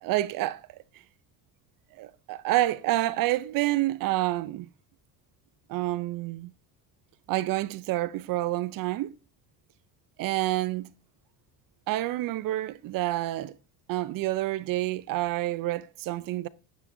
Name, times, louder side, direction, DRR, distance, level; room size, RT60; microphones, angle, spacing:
voice 1, 0.0-0.6 2.0-4.7 5.7-6.5 7.3-9.1 10.2-10.9 11.9-13.5 13.9-16.5, right 16 dB, 55° right, 0.5 m, -28 dB
12.0 x 9.7 x 2.6 m
cardioid pair, 135°, 42 cm